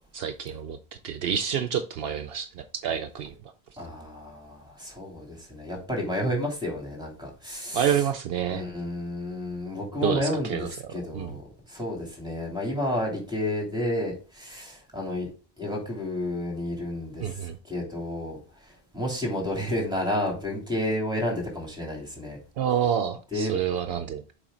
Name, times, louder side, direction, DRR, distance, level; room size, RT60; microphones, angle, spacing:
voice 1, 0.1-0.8 1.0-3.3 7.7-8.6 10.0-11.3 17.2-17.6 22.6-24.2, right 8 dB, 70° right, 8 dB, 0.8 m, -28 dB
voice 2, 3.8-8.0 8.5-11.4 11.7-15.3 15.6-22.4 23.3-23.5, left 1 dB, 5° right, -1 dB, 3.1 m, -31 dB
7.2 x 5.0 x 3.8 m, 0.36 s
omnidirectional pair, 1.1 m